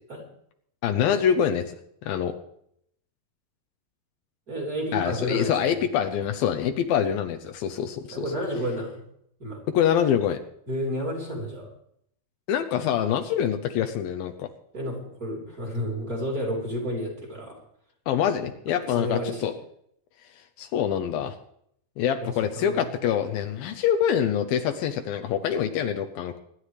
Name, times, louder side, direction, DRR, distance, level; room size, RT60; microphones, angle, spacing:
voice 1, 0.8-1.7 2.0-2.4 4.9-8.3 9.7-10.4 12.5-14.5 18.1-19.5 20.6-21.4 22.0-26.4, left 9 dB, 75° left, 6 dB, 2.5 m, -25 dB
voice 2, 4.5-5.7 8.1-9.0 9.4-9.6 10.7-11.7 14.7-17.6 18.7-19.5 22.2-22.9, equal, 25° right, -1 dB, 3.8 m, -31 dB
24.5 x 11.5 x 3.3 m, 0.70 s
omnidirectional pair, 4.4 m